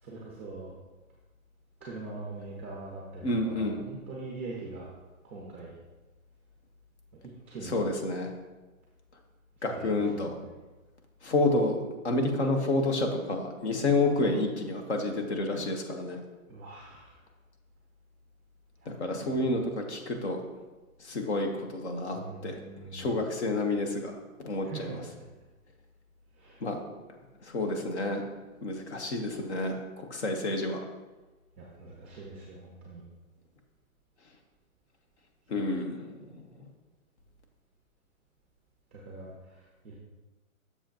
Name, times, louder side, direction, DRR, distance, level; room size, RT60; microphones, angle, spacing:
voice 1, 0.0-0.7 1.8-4.9 5.2-5.8 7.2-7.8 9.6-10.6 16.5-17.2 18.8-19.5 22.1-23.1 24.6-25.0 26.3-26.7 31.6-33.0 38.9-39.9, right 3 dB, 10° right, -4 dB, 0.6 m, -43 dB
voice 2, 3.2-3.8 7.7-8.3 9.6-10.3 11.2-11.8 12.0-16.2 19.0-20.4 21.0-22.6 22.9-24.1 24.4-24.9 26.6-26.8 27.5-28.2 28.6-29.8 30.1-30.8 35.5-36.1, left 2 dB, 50° left, 4 dB, 1.2 m, -29 dB
7.8 x 6.8 x 2.9 m, 1.2 s
hypercardioid pair, 170°, 42 cm